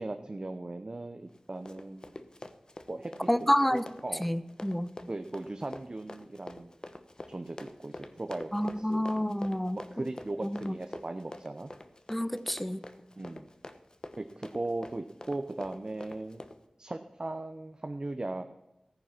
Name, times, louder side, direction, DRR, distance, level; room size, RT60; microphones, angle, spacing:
voice 1, 0.0-2.1 2.9-3.1 3.7-4.3 5.1-6.7 7.3-9.3 9.9-11.7 13.2-13.5 14.2-16.4 16.8-18.4, right 2 dB, 40° right, 6 dB, 0.7 m, -38 dB
Run, 1.3-16.6, left 2 dB, 40° left, 0.9 m, -46 dB
voice 2, 3.3-3.9 4.2-5.0 8.5-10.1 10.4-10.8 12.1-12.8, equal, 5° left, 14 dB, 0.7 m, -29 dB
14.0 x 9.5 x 5.8 m, 0.95 s
wide cardioid pair, 65°, 2 cm